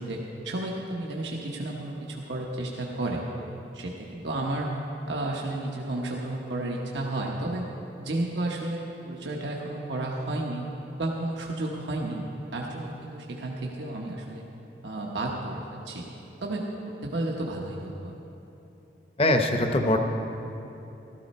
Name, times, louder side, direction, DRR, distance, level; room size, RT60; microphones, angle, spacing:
voice 1, 0.0-3.2 3.7-4.8 5.1-7.6 8.0-10.6 11.0-12.2 12.5-14.4 14.8-16.1 16.4-16.7 17.0-18.1, right 2 dB, 90° right, -1 dB, 1.1 m, -32 dB
voice 2, 19.2-20.0, left 1 dB, 30° left, 5 dB, 0.8 m, -22 dB
14.0 x 13.5 x 4.2 m, 2.9 s
head